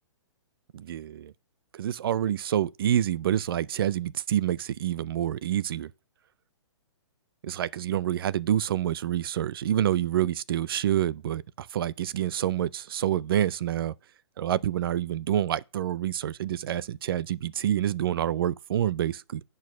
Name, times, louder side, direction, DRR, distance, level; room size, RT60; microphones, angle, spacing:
voice 1, 0.7-1.3 1.7-5.9 7.4-13.9 14.4-19.4, right 11 dB, 50° right, 0.4 m, -27 dB
8.3 x 4.6 x 6.0 m
hypercardioid pair, 165°, 15 cm